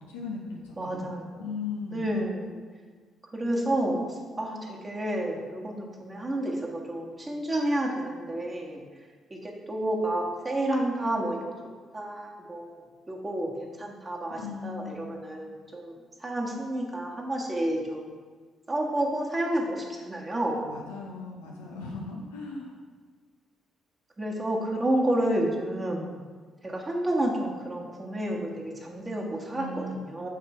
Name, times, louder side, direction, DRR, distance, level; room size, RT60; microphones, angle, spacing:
voice 1, 0.0-2.1 14.4-15.1 20.6-22.7 29.6-30.0, left 4 dB, 90° left, -1 dB, 0.6 m, -38 dB
voice 2, 0.8-1.4 1.9-2.6 3.3-4.0 4.4-8.8 9.3-11.4 11.9-12.7 13.1-15.9 16.2-18.1 18.7-20.7 24.2-26.2 26.6-30.3, right 1 dB, 30° right, -2 dB, 1.5 m, -30 dB
6.8 x 3.2 x 4.5 m, 1.5 s
hypercardioid pair, 50°, 0 cm